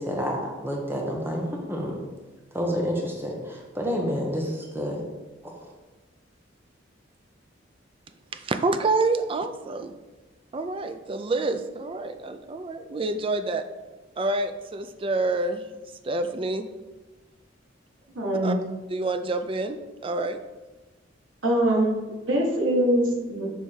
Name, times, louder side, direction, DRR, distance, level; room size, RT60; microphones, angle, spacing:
voice 1, 0.0-2.0 2.5-5.0, equal, 10° right, -1 dB, 1.0 m, -29 dB
voice 2, 8.3-9.9 10.5-13.6 14.2-15.7 16.0-16.7 18.4-18.5 18.9-19.8 20.0-20.4, right 3 dB, 30° right, 9 dB, 0.3 m, -27 dB
voice 3, 18.1-18.6 21.4-22.0 22.2-23.5, right 1 dB, 90° right, -2 dB, 1.3 m, -23 dB
6.3 x 3.4 x 4.3 m, 1.2 s
head